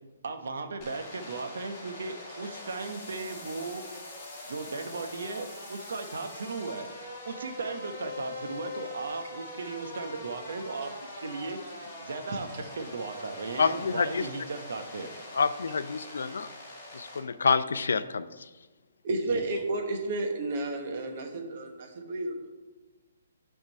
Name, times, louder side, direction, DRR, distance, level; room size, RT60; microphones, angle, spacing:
voice 1, 0.2-3.9 4.4-6.9 7.2-11.6 12.0-15.1 19.2-19.4, right 3 dB, 65° right, 7 dB, 0.8 m, -37 dB
sound 1, 0.8-17.2, left 2 dB, 20° left, 1.6 m, -43 dB
voice 2, 13.6-14.3 15.3-16.5 16.9-18.3, left 5 dB, 90° left, 13 dB, 0.4 m, -27 dB
voice 3, 19.0-22.4, right 2 dB, 35° right, 4 dB, 1.0 m, -32 dB
8.8 x 3.7 x 5.3 m, 1.2 s
hypercardioid pair, 180°, 0 cm